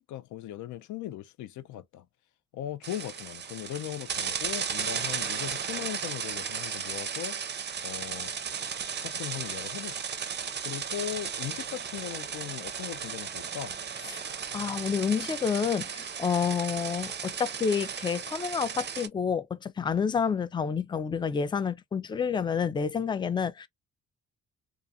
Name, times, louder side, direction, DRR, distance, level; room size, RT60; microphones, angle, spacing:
voice 1, 0.0-2.1 2.5-7.4 7.8-8.3 9.0-10.1 10.6-13.8, left 12 dB, 75° left, 0.5 m, -38 dB
sound 1, 2.8-19.1, right 7 dB, 35° right, 0.5 m, -35 dB
voice 2, 14.5-23.7, left 6 dB, 15° left, 0.3 m, -29 dB
2.4 x 2.4 x 2.6 m
cardioid pair, 90°, 30 cm